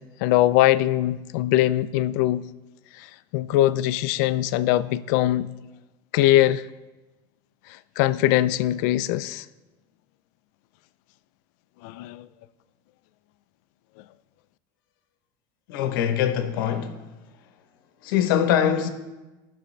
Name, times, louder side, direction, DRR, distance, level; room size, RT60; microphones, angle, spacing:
voice 1, 0.0-2.4 3.0-3.1 3.3-5.5 6.1-6.7 8.0-9.5 11.8-12.3, left 14 dB, 55° left, 0.4 m, -21 dB
voice 2, 15.7-17.2 18.0-18.9, left 9 dB, 85° left, 0.9 m, -23 dB
17.0 x 6.3 x 3.2 m
cardioid pair, 180°, 11 cm